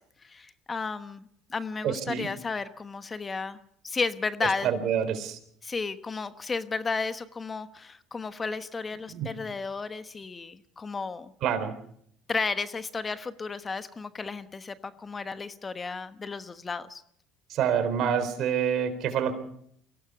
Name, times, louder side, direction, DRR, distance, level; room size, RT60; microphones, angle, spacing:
voice 1, 0.2-3.6 3.8-4.7 5.6-11.3 12.3-17.0, left 4 dB, 25° left, 11 dB, 1.1 m, -33 dB
voice 2, 1.8-2.3 4.6-5.4 9.1-9.3 11.4-11.7 17.5-19.3, right 8 dB, 60° right, 10 dB, 4.0 m, -27 dB
24.0 x 17.0 x 6.9 m, 0.68 s
supercardioid pair, 95°, 0 cm